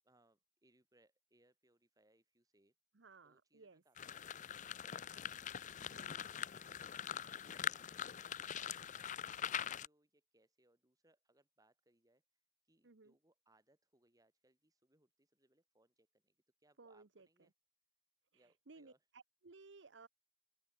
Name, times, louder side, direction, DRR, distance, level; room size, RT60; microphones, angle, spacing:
voice 1, 0.0-2.7 3.2-6.1 6.4-17.5 18.3-19.0, right 1 dB, 20° right, 4.3 m, -75 dB
voice 2, 2.9-3.8 5.8-6.3 12.8-13.2 16.8-17.5 18.3-20.1, right 3 dB, 85° right, 1.0 m, -60 dB
sound 1, 4.0-9.9, left 9 dB, 45° left, 0.5 m, -43 dB
open air
head